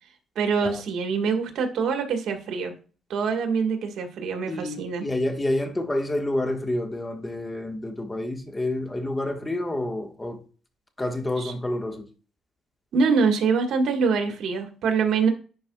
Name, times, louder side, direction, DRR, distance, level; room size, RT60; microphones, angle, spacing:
voice 1, 0.3-2.7 3.1-5.1 11.4-11.5 12.9-15.3, right 5 dB, 75° right, 1.6 m, -24 dB
voice 2, 4.5-10.4 11.0-12.1, left 1 dB, 15° left, 1.4 m, -28 dB
10.5 x 4.6 x 2.3 m
cardioid pair, 90°, 0 cm